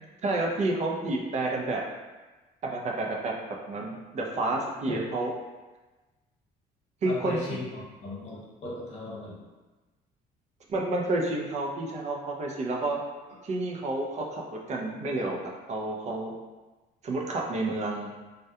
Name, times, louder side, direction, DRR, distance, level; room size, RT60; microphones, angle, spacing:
voice 1, 0.2-1.8 2.6-3.3 3.7-5.3 7.0-7.7 10.7-13.0 13.4-14.4 14.7-16.3 17.0-18.1, right 2 dB, 45° right, -1 dB, 0.4 m, -30 dB
voice 2, 7.1-9.4, left 2 dB, 40° left, -7 dB, 1.1 m, -37 dB
2.2 x 2.2 x 2.7 m, 1.2 s
cardioid pair, 110°, 17 cm